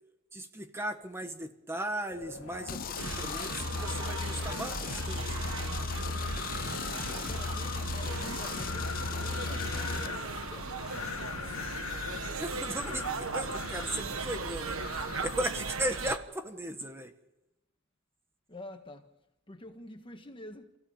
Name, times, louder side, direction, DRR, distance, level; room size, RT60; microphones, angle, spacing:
voice 1, 0.3-5.6 12.3-17.1, right 1 dB, 10° right, 1.5 m, -37 dB
Wind, 2.1-15.7, left 5 dB, 75° left, 2.1 m, -42 dB
sound 1, 2.7-10.1, left 4 dB, 40° left, 0.7 m, -36 dB
sound 2, 3.0-16.2, right 4 dB, 70° right, 1.4 m, -38 dB
voice 2, 6.2-6.8 7.1-10.7 18.5-19.1 19.5-20.8, left 1 dB, 25° left, 1.5 m, -48 dB
27.5 x 16.0 x 7.3 m
head